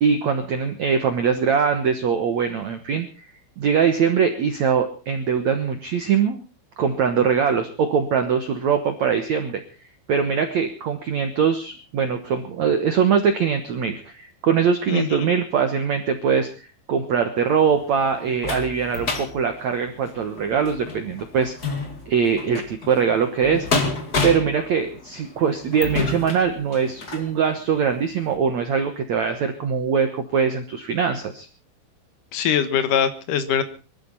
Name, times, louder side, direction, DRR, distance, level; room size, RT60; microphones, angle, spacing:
voice 1, 0.0-3.3 3.6-6.4 6.8-9.6 10.1-16.5 16.9-21.7 22.1-23.7 24.2-31.5, right 6 dB, 75° right, 6 dB, 1.6 m, -22 dB
voice 2, 14.9-15.2 32.3-33.6, left 8 dB, 65° left, 10 dB, 2.3 m, -22 dB
sound 1, 17.5-27.3 27.9-28.0 28.3-28.4, left 3 dB, 40° left, 1.4 m, -30 dB
23.5 x 13.5 x 4.1 m, 0.35 s
omnidirectional pair, 5.3 m